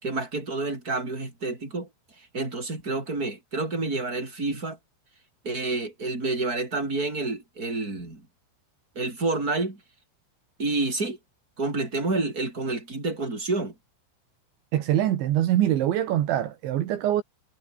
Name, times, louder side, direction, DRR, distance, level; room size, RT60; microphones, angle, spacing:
voice 1, 0.0-1.9 2.2-4.8 5.4-8.3 8.9-9.8 10.6-11.2 11.6-13.7, right 3 dB, 20° right, 6.8 m, -29 dB
voice 2, 14.7-17.2, right 12 dB, 75° right, 4.0 m, -24 dB
omnidirectional pair, 5.5 m